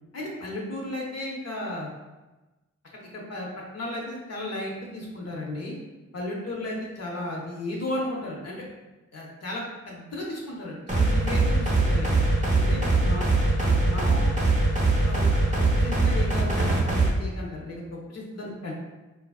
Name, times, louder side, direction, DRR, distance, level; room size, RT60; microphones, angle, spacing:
voice 1, 0.1-1.9 2.9-3.5 3.7-5.8 6.1-8.6 9.1-12.2 12.6-13.3 13.6-14.2 15.0-18.7, left 1 dB, 60° left, -2 dB, 0.6 m, -34 dB
sound 1, 10.9-17.1, right 2 dB, 25° right, 0.6 m, -22 dB
3.2 x 2.4 x 2.3 m, 1.1 s
wide cardioid pair, 110°, 30 cm